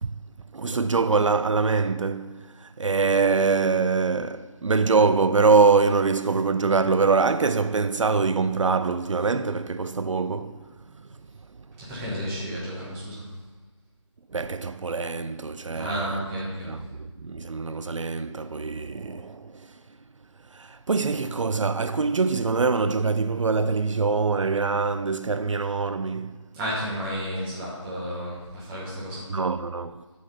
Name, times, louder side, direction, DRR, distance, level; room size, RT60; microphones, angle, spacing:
voice 1, 0.5-10.6 14.3-16.2 16.6-19.7 20.5-26.4 29.3-30.0, right 4 dB, 75° right, 0.4 m, -24 dB
voice 2, 11.8-13.2 15.7-16.7 26.5-29.3, equal, 5° right, 1.1 m, -32 dB
7.9 x 6.9 x 5.1 m
figure-of-eight pair, 165°, 16 cm